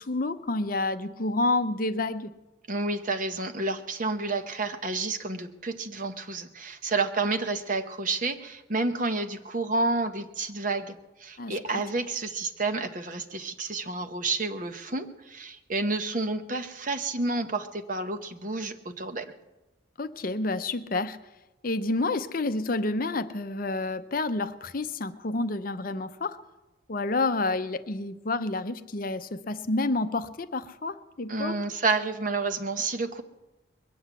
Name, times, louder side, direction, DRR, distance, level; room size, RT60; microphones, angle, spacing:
voice 1, 0.0-2.3 11.4-11.5 20.0-21.2 21.6-26.4 26.9-31.6, left 2 dB, 45° left, 11 dB, 0.6 m, -29 dB
voice 2, 2.7-19.3 31.3-33.2, right 3 dB, 40° right, 8 dB, 0.9 m, -30 dB
22.0 x 7.9 x 8.2 m, 1.0 s
head